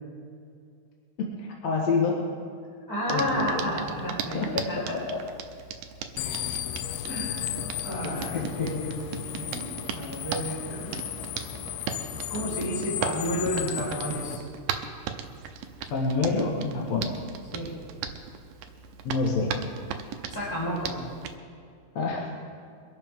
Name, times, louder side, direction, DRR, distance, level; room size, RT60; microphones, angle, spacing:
voice 1, 1.2-2.2 3.1-3.4 4.3-4.5 4.8-5.2 8.3-8.7 15.9-17.2 19.0-19.5 22.0-22.2, left 4 dB, 55° left, -2 dB, 2.1 m, -27 dB
voice 2, 2.9-4.9 7.1-7.5 7.8-9.7 9.9-11.0 12.3-14.4 17.5-17.8 20.3-21.0, equal, 5° left, -6 dB, 4.2 m, -31 dB
Hands, 3.1-21.4, right 8 dB, 75° right, 2.2 m, -38 dB
sound 1, 6.2-14.4, left 11 dB, 85° left, 1.9 m, -35 dB
23.0 x 12.0 x 3.7 m, 2.3 s
omnidirectional pair, 4.4 m